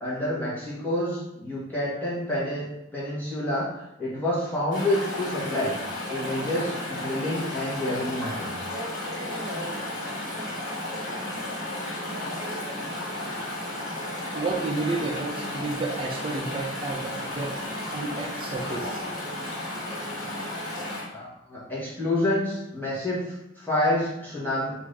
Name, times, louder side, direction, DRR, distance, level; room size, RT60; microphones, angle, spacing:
voice 1, 0.0-2.7 2.9-3.7 4.0-5.7 6.1-8.5 21.1-23.3 23.6-24.7, left 1 dB, 10° left, -9 dB, 1.1 m, -28 dB
Chatter / Stream, 4.7-21.0, left 1 dB, 40° left, 1.4 m, -33 dB
voice 2, 14.3-17.6 17.9-19.0, right 3 dB, 30° right, 1 dB, 0.4 m, -31 dB
3.4 x 2.6 x 3.2 m, 0.89 s
head